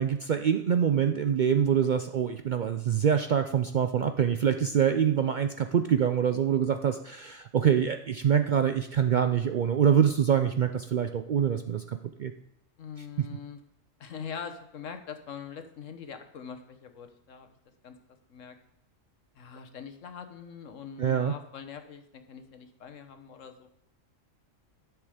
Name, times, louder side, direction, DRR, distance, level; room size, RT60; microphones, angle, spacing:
voice 1, 0.0-12.3 13.2-13.3 21.0-21.3, right 8 dB, 70° right, 8 dB, 0.4 m, -25 dB
voice 2, 12.8-13.6 14.0-17.5 17.8-17.9 18.3-18.6 19.4-23.7, left 7 dB, 75° left, 7 dB, 1.4 m, -43 dB
10.5 x 6.6 x 4.9 m, 0.79 s
omnidirectional pair, 1.3 m